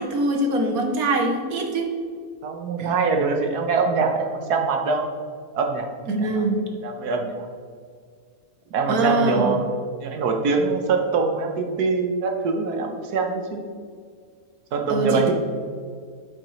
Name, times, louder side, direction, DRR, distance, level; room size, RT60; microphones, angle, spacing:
voice 1, 0.0-1.9 2.8-2.9 6.1-6.7 8.9-9.5 14.9-15.3, right 2 dB, 75° right, 3 dB, 1.4 m, -23 dB
voice 2, 2.4-5.1 5.5-5.9 6.2-6.4 6.8-7.5 8.7-9.7 10.0-13.6 14.7-15.3, right 4 dB, 90° right, 3 dB, 1.5 m, -23 dB
8.7 x 7.9 x 3.2 m, 2.1 s
omnidirectional pair, 1.6 m